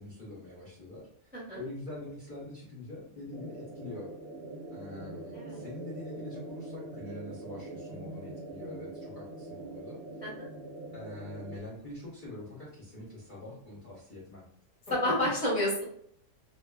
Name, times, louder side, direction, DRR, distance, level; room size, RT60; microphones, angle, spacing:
voice 1, 0.0-4.1 4.7-10.0 10.9-14.4 14.9-15.1, left 2 dB, 50° left, -6 dB, 0.6 m, -44 dB
sound 1, 3.3-11.6, right 2 dB, 60° right, 0.7 m, -43 dB
voice 2, 5.3-5.6 10.2-10.5 14.9-15.8, left 1 dB, 10° right, -5 dB, 0.5 m, -30 dB
2.6 x 2.3 x 2.2 m, 0.67 s
omnidirectional pair, 1.5 m